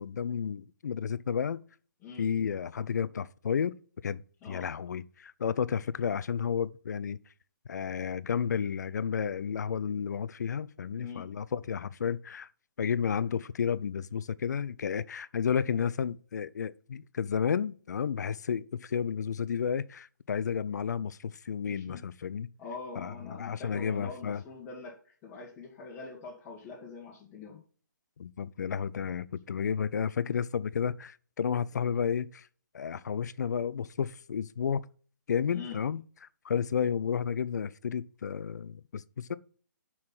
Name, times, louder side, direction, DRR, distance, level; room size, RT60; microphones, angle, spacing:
voice 1, 0.0-1.6 2.2-3.7 4.0-4.2 4.5-7.2 7.7-12.5 12.8-22.5 23.0-24.4 28.2-32.5 32.7-34.9 35.3-36.0 36.4-39.4, left 7 dB, 60° left, 0.6 m, -32 dB
voice 2, 11.0-11.3 21.7-22.0 22.6-27.6 35.5-35.8, left 4 dB, 20° left, 1.8 m, -44 dB
6.5 x 5.7 x 6.1 m
hypercardioid pair, 145°, 10 cm